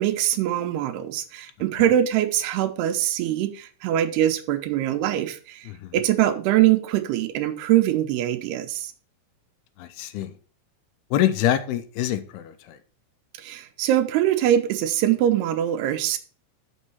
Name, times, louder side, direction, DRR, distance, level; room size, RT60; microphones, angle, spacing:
voice 1, 0.0-5.6 5.9-8.9 13.4-16.2, right 12 dB, 85° right, 2.8 m, -23 dB
voice 2, 5.7-6.0 9.8-10.3 11.1-12.8, left 11 dB, 90° left, 2.7 m, -25 dB
6.6 x 6.3 x 5.5 m
omnidirectional pair, 4.6 m